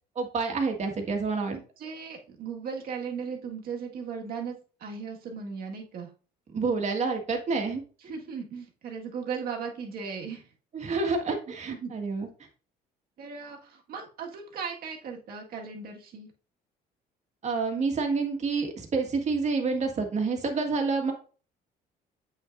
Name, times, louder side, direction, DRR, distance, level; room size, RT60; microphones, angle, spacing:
voice 1, 0.2-1.6 6.5-7.8 10.7-12.3 17.4-21.1, right 4 dB, 40° right, 4 dB, 1.7 m, -28 dB
voice 2, 1.5-6.1 8.1-10.4 11.7-11.9 13.2-16.3, right 6 dB, 60° right, 1 dB, 1.8 m, -37 dB
8.3 x 5.8 x 2.6 m, 0.38 s
cardioid pair, 110°, 17 cm